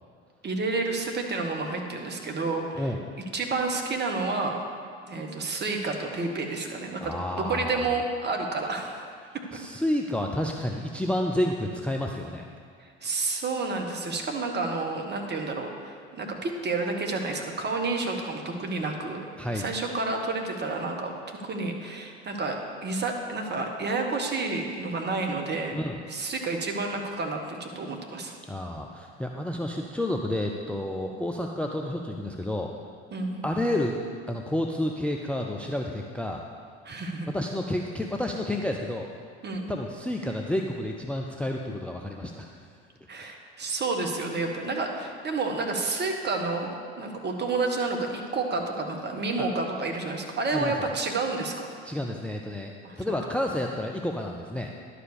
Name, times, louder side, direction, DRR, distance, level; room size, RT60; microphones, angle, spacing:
voice 1, 0.4-3.0 3.3-4.6 5.1-9.1 12.8-19.3 19.5-25.8 26.1-28.3 31.0-31.1 33.1-33.4 36.8-37.3 39.4-39.7 43.1-51.7 52.8-53.2, right 3 dB, 30° right, 3 dB, 1.5 m, -30 dB
voice 2, 7.0-7.8 9.5-12.4 19.4-19.7 25.7-26.0 28.5-32.7 33.4-34.0 34.3-36.4 37.2-39.1 39.7-42.5 49.4-49.5 50.5-50.7 51.8-52.7 53.0-54.7, left 1 dB, 5° left, 1 dB, 0.6 m, -30 dB
11.0 x 5.1 x 6.7 m, 2.1 s
hypercardioid pair, 65°, 33 cm